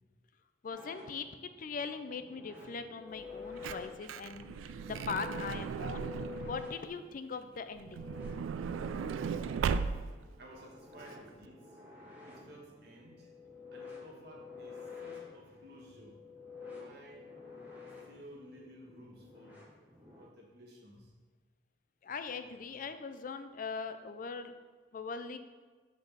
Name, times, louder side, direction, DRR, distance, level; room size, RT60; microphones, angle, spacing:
voice 1, 0.6-6.1 6.4-8.1 22.0-24.5 24.9-25.4, left 5 dB, 45° left, 9 dB, 0.4 m, -41 dB
sound 1, 0.7-20.2, left 5 dB, 10° right, 1.6 m, -50 dB
Truck / Door, 3.2-6.7 7.8-10.3 11.0-11.1 11.3-11.5, right 6 dB, 85° right, 0.3 m, -37 dB
voice 2, 10.4-11.8 12.3-13.3 13.7-16.2 16.6-17.3 18.0-21.1, equal, 55° right, -2 dB, 1.4 m, -54 dB
5.3 x 4.0 x 6.0 m, 1.4 s
head